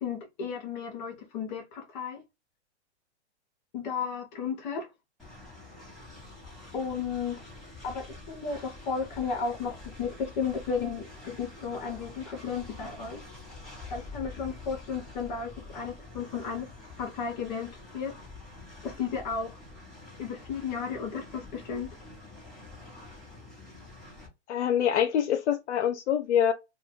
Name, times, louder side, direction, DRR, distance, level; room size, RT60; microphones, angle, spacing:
voice 1, 0.0-2.2 3.7-4.9 6.7-7.4 7.8-13.2 13.9-16.7 17.0-18.1 18.8-19.6 20.2-21.9, left 6 dB, 40° left, 0.9 m, -34 dB
Train, 5.2-24.3, left 2 dB, ahead, 1.1 m, -47 dB
voice 2, 24.5-26.5, left 9 dB, 80° left, 0.5 m, -25 dB
2.5 x 2.3 x 3.6 m
hypercardioid pair, 145°, 34 cm